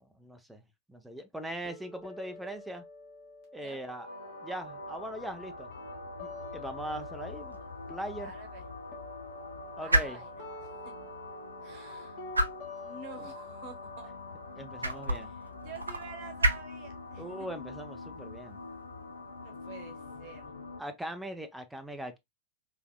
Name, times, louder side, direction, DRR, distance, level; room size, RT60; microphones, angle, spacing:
voice 1, 0.2-0.6 0.9-2.8 3.5-4.1 4.4-5.7 6.2-7.6 7.9-8.3 9.8-10.2 14.6-15.3 17.2-18.6 20.8-22.2, right 1 dB, 5° right, 0.6 m, -40 dB
sound 1, 1.6-7.6 7.9-15.7, left 3 dB, 40° left, 1.6 m, -49 dB
sound 2, 4.1-20.8, left 3 dB, 75° left, 0.7 m, -44 dB
sound 3, 6.9-20.5, right 1 dB, 80° right, 0.4 m, -36 dB
voice 2, 8.2-8.7 9.8-10.9 11.6-12.2 12.8-14.1 15.1-17.5 19.4-20.5, right 5 dB, 45° right, 1.0 m, -49 dB
3.4 x 3.3 x 2.2 m
figure-of-eight pair, 90°, 0 cm